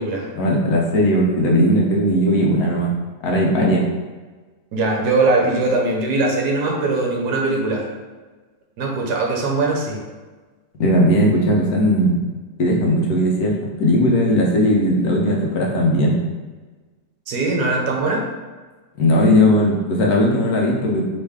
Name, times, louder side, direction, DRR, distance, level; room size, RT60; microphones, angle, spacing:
voice 1, 0.4-2.9 3.2-3.8 10.8-12.2 12.6-13.5 13.8-16.1 19.0-21.0, equal, 65° left, -2 dB, 1.2 m, -17 dB
voice 2, 4.7-7.9 8.8-10.0 17.3-18.2, right 2 dB, 70° right, -1 dB, 1.3 m, -20 dB
4.2 x 3.2 x 3.5 m, 1.3 s
omnidirectional pair, 1.8 m